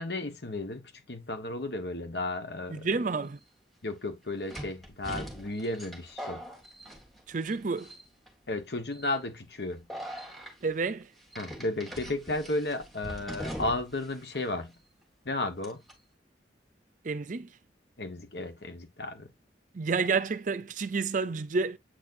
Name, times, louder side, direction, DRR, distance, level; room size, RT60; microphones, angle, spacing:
voice 1, 0.0-2.9 3.8-6.5 8.5-9.9 11.4-14.7 15.2-15.8 18.0-19.3, left 2 dB, 70° left, 1.4 m, -34 dB
voice 2, 2.7-3.4 7.3-7.9 10.6-11.1 17.0-17.6 19.7-21.8, right 4 dB, 45° right, 0.5 m, -30 dB
sound 1, 3.2-3.3 4.5-7.5 7.8-8.3 8.9-9.2 9.9-10.5 11.3-14.1 14.3-14.4 15.6-15.9, equal, ahead, 2.0 m, -41 dB
8.2 x 4.3 x 2.7 m
head